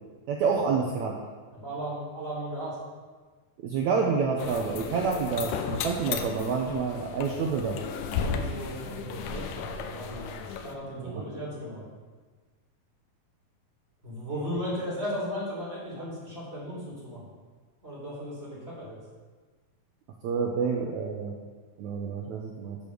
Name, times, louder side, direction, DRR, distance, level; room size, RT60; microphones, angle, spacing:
voice 1, 0.3-1.2 3.6-7.8 11.0-11.2 20.2-21.3 21.8-22.8, right 5 dB, 75° right, 0 dB, 1.7 m, -28 dB
voice 2, 1.5-2.8 8.1-11.8 14.0-17.2 17.8-19.0, equal, 15° right, -6 dB, 3.3 m, -36 dB
sound 1, 4.4-10.8, left 6 dB, 80° left, 2.1 m, -35 dB
8.6 x 6.9 x 6.2 m, 1.4 s
omnidirectional pair, 4.2 m